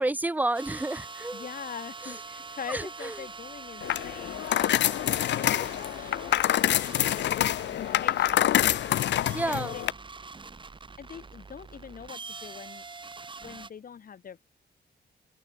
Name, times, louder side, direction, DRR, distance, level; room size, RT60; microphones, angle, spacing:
voice 1, 0.0-1.4 2.7-3.1 9.3-9.7, right 2 dB, 10° right, 0.7 m, -30 dB
sound 1, 0.5-13.7, right 4 dB, 25° right, 2.5 m, -44 dB
voice 2, 1.3-6.3 6.7-8.5 9.4-9.8 11.0-12.8 13.4-14.4, left 7 dB, 50° left, 2.2 m, -43 dB
sound 2, 3.8-9.9, left 12 dB, 80° left, 0.6 m, -26 dB
open air
wide cardioid pair, 150°, 18 cm